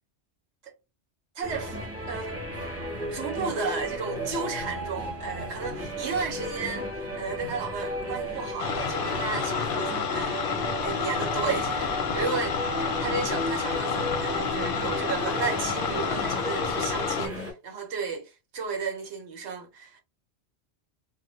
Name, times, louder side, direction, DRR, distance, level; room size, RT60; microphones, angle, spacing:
sound 1, 1.4-17.5, equal, 15° right, 0.8 m, -34 dB
voice 1, 1.4-1.8 2.1-2.4 3.1-10.5 10.8-12.6 13.0-20.0, right 5 dB, 75° right, 0.9 m, -33 dB
sound 2, 8.6-17.3, left 6 dB, 60° left, 0.7 m, -29 dB
2.1 x 2.0 x 2.9 m
omnidirectional pair, 1.2 m